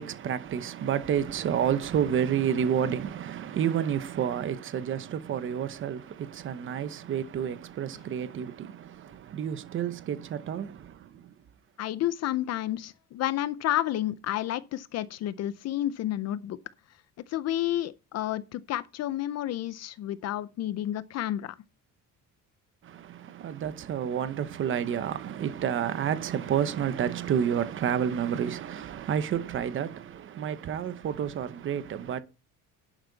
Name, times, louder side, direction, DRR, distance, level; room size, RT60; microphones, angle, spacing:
voice 1, 0.0-11.3 22.8-32.2, right 8 dB, 35° right, 1.0 m, -30 dB
voice 2, 11.8-16.6 17.3-21.6, left 13 dB, 50° left, 0.6 m, -30 dB
11.5 x 8.9 x 4.0 m
cardioid pair, 180°, 33 cm